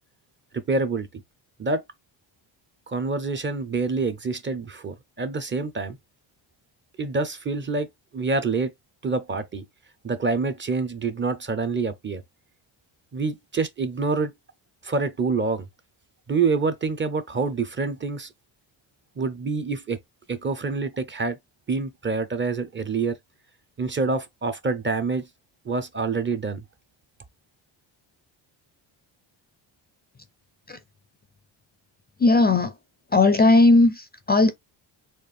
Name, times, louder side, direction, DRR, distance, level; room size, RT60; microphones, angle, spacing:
voice 1, 0.5-1.1 1.6-1.8 2.9-6.0 7.0-7.9 8.1-8.7 9.0-9.6 10.0-12.2 13.1-14.3 14.8-15.7 16.3-18.3 19.2-20.0 20.3-21.4 21.7-23.2 23.8-25.2 25.7-26.6, right 4 dB, 25° right, 0.6 m, -26 dB
voice 2, 32.2-32.7 33.1-34.5, left 2 dB, 20° left, 0.4 m, -17 dB
4.4 x 2.5 x 3.3 m
cardioid pair, 110°, 47 cm